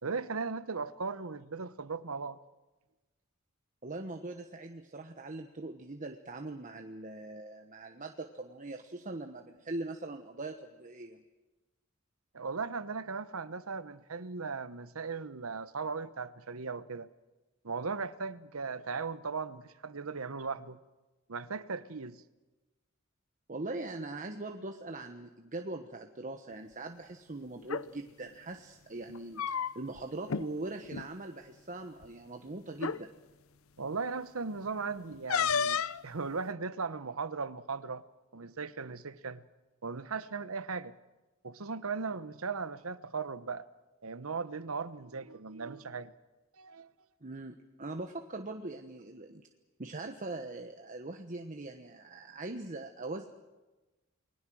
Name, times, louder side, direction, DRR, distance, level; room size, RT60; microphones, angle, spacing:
voice 1, 0.0-2.4 12.3-17.1 17.6-20.8 21.3-22.2 33.8-38.1 38.3-39.4 39.8-40.9 41.4-43.7 44.0-46.1 46.6-46.9, right 4 dB, 80° right, 1.0 m, -37 dB
voice 2, 3.8-11.2 23.5-33.1 47.2-49.5 49.8-53.3, right 2 dB, 40° right, 1.2 m, -41 dB
sound 1, 27.6-27.9 29.1-30.0 30.3-30.5 30.8-31.1 32.0-32.1 32.8-33.0 35.3-36.0, left 6 dB, 80° left, 0.7 m, -31 dB
29.5 x 21.0 x 6.3 m
head